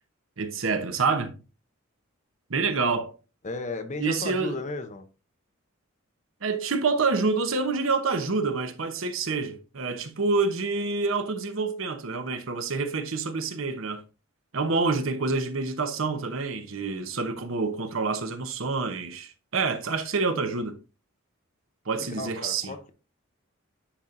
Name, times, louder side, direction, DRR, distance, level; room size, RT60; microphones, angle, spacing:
voice 1, 0.4-1.3 2.5-3.1 4.0-4.5 6.4-14.0 14.5-20.8 21.9-22.7, right 4 dB, 65° right, 0.9 m, -27 dB
voice 2, 3.4-5.0 21.9-22.9, left 3 dB, 35° left, 0.7 m, -35 dB
9.9 x 4.3 x 2.5 m
head